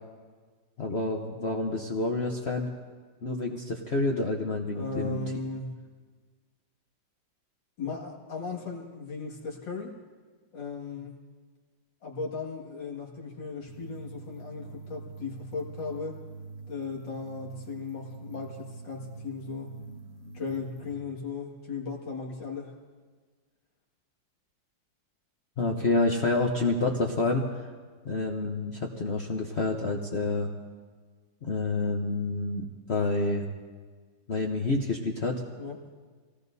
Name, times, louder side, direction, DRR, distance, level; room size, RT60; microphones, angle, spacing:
voice 1, 0.8-2.7 3.2-5.2 25.6-27.7 28.0-30.5 31.4-33.4 34.3-35.4, left 3 dB, 45° left, 1 dB, 1.0 m, -28 dB
voice 2, 4.7-5.8 7.8-9.9 10.5-11.2 12.0-16.2 16.7-19.7 20.3-22.7 35.6-35.8, left 4 dB, 70° left, -2 dB, 2.8 m, -37 dB
sound 1, 13.7-20.9, right 3 dB, 45° right, 1.4 m, -45 dB
26.5 x 18.5 x 2.7 m, 1.5 s
omnidirectional pair, 2.0 m